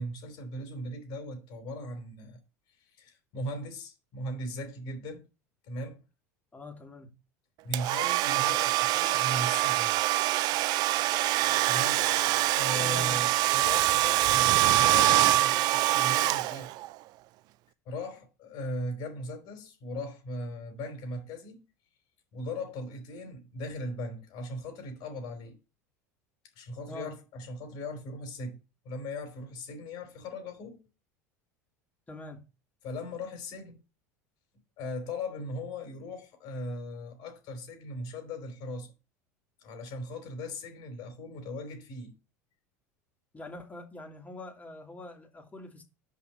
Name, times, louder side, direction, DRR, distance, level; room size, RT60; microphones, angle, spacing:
voice 1, 0.0-2.4 2.9-5.3 5.6-6.0 7.6-10.0 11.7-12.1 12.5-16.7 17.8-21.6 22.3-25.6 26.5-28.6 28.8-30.9 32.8-33.8 34.8-38.9 39.6-42.2, left 1 dB, 55° left, 3.2 m, -38 dB
voice 2, 6.5-7.1 12.8-13.3 26.9-27.1 32.1-32.4 43.3-45.8, left 2 dB, 20° left, 2.6 m, -44 dB
Domestic sounds home sounds, 7.7-16.9, right 15 dB, 50° right, 0.4 m, -25 dB
6.5 x 5.1 x 5.6 m
hypercardioid pair, 85°, 9 cm